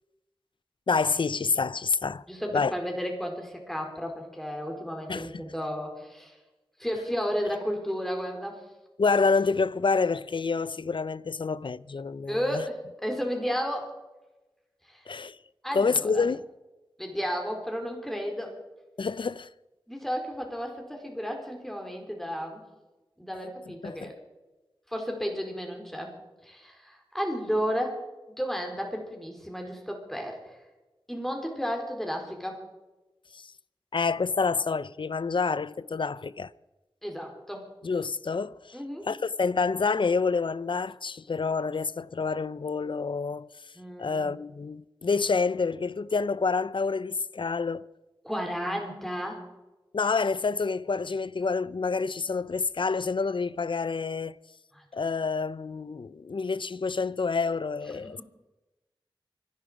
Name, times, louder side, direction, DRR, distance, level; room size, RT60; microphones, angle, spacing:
voice 1, 0.9-2.2 2.5-2.7 5.1-5.4 9.0-12.6 15.1-15.4 15.7-16.4 19.0-19.5 23.7-24.1 33.3-33.5 33.9-36.5 37.8-38.8 39.0-43.5 44.0-47.8 49.9-54.4 54.9-58.2, left 4 dB, 65° left, 0.5 m, -28 dB
voice 2, 2.3-6.4 6.8-8.6 12.3-13.9 14.9-15.0 15.6-16.2 17.0-18.6 19.9-22.6 23.2-24.1 24.9-26.1 26.4-28.0 28.4-30.6 31.1-32.6 37.0-37.7 38.7-39.1 43.7-44.3 48.2-49.4 54.7-54.8 57.9-58.2, equal, 5° left, 4.4 m, -33 dB
24.5 x 11.5 x 5.1 m
wide cardioid pair, 60°, 9 cm